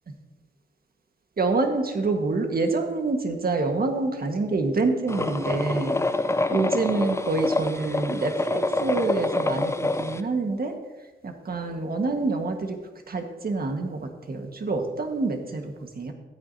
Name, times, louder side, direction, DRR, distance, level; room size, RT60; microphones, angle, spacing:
voice 1, 1.4-6.0 6.5-10.7 11.2-12.8 13.1-16.1, right 3 dB, 50° right, 4 dB, 1.6 m, -27 dB
sound 1, 5.1-10.2, left 2 dB, 15° left, 0.6 m, -26 dB
14.0 x 8.9 x 2.8 m, 1.2 s
cardioid pair, 60°, 20 cm